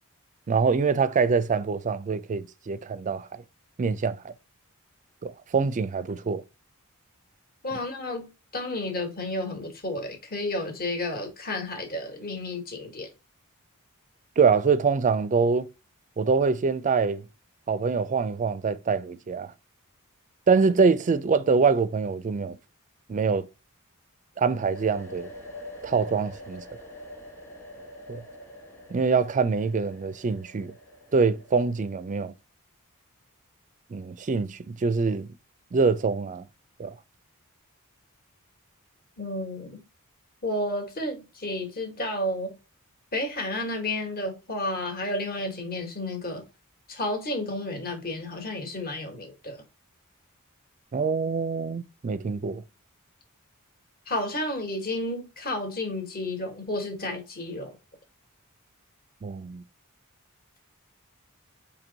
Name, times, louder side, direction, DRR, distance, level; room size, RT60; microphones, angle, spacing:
voice 1, 0.5-3.4 3.8-4.3 5.2-6.4 14.4-15.7 16.2-17.2 17.7-19.5 20.5-22.6 23.1-23.5 24.4-25.3 25.8-26.6 28.1-28.2 28.9-30.7 31.1-32.3 33.9-35.3 35.7-36.5 36.8-36.9 50.9-52.6 59.2-59.6, right 5 dB, 35° right, 0.4 m, -24 dB
voice 2, 7.6-13.1 39.2-39.8 40.4-42.6 43.1-46.4 46.9-49.6 54.1-57.7, left 1 dB, 45° left, 1.4 m, -31 dB
sound 1, 24.4-32.1, left 1 dB, 10° left, 1.1 m, -45 dB
4.5 x 2.9 x 3.9 m
head